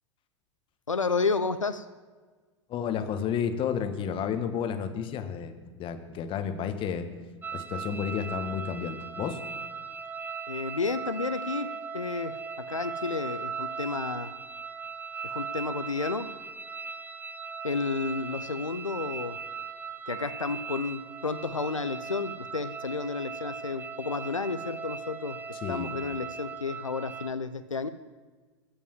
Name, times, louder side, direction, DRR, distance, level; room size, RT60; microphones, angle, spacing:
voice 1, 0.9-1.9 10.5-11.7 11.9-14.3 15.2-16.3 17.6-19.4 20.1-25.4 25.7-27.9, left 4 dB, 90° left, 11 dB, 0.5 m, -31 dB
voice 2, 2.7-7.1 7.5-9.4 25.5-25.9, left 7 dB, 35° left, 8 dB, 1.4 m, -31 dB
sound 1, 7.4-27.3, right 5 dB, 10° right, 0.6 m, -38 dB
14.5 x 5.3 x 7.7 m, 1.4 s
figure-of-eight pair, 90°, 16 cm